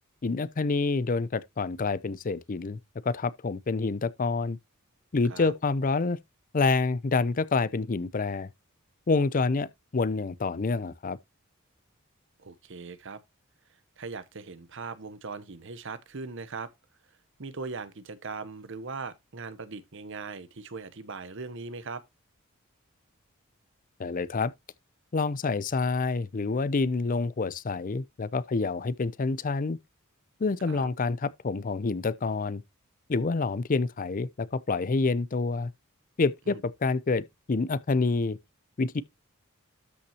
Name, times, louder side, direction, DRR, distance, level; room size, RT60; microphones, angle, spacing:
voice 1, 0.2-2.8 3.0-4.6 5.1-6.2 6.5-8.5 9.1-11.2 24.0-24.5 25.1-29.8 30.4-32.6 33.1-35.7 36.2-38.4 38.8-39.0, left 4 dB, 40° left, 0.5 m, -27 dB
voice 2, 12.4-13.2 14.0-16.7 17.4-22.0 30.7-30.9 36.5-36.6, right 4 dB, 60° right, 0.9 m, -39 dB
12.5 x 5.8 x 2.8 m
head